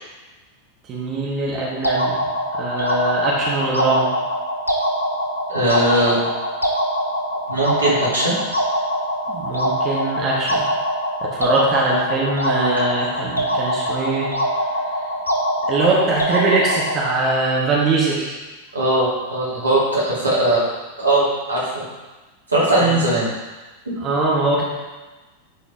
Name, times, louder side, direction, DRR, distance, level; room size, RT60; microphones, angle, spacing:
voice 1, 0.9-2.2 2.5-4.1 9.3-10.7 11.2-14.3 15.7-18.3 22.8-22.9 24.0-24.6, right 2 dB, 30° right, -4 dB, 1.5 m, -21 dB
sound 1, 1.8-17.2, equal, 85° left, 0.9 m, -23 dB
voice 2, 5.5-6.3 7.5-8.3 18.7-20.6 21.0-21.8 22.5-23.3, right 1 dB, 80° right, -7 dB, 2.6 m, -19 dB
10.0 x 4.9 x 3.5 m, 1.2 s
figure-of-eight pair, 90°, 0 cm